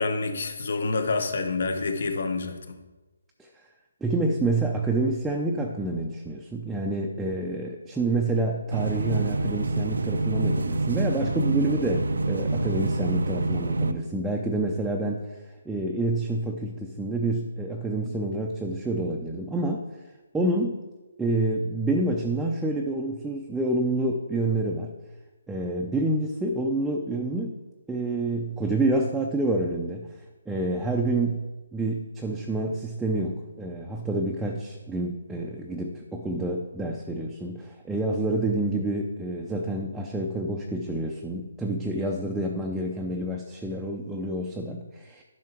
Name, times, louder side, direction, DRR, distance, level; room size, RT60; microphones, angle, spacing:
voice 1, 0.0-2.8, left 3 dB, 60° left, 7 dB, 1.2 m, -28 dB
voice 2, 4.0-15.3 15.7-19.8 20.3-20.8 21.2-24.9 25.5-27.6 27.9-30.1 30.5-31.5 31.7-45.2, right 2 dB, 5° right, -1 dB, 0.6 m, -28 dB
sound 1, 8.7-13.9, right 2 dB, 80° right, 0.6 m, -26 dB
11.0 x 5.9 x 4.4 m, 1.2 s
hypercardioid pair, 160°, 0 cm